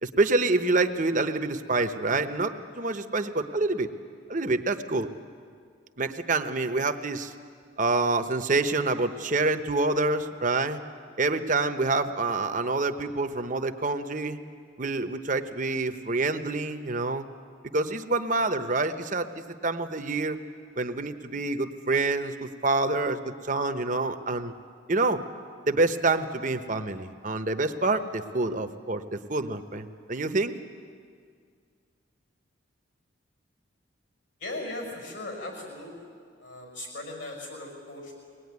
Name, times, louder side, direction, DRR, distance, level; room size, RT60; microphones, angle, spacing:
voice 1, 0.0-3.9 4.3-5.1 6.0-7.3 7.8-10.8 11.2-14.4 14.8-17.3 17.7-20.4 20.8-24.5 24.9-25.2 25.7-30.6, right 3 dB, 40° right, 8 dB, 0.9 m, -27 dB
voice 2, 34.4-36.1 36.4-38.1, left 2 dB, 65° left, 2 dB, 6.0 m, -38 dB
23.0 x 19.0 x 9.6 m, 2.1 s
head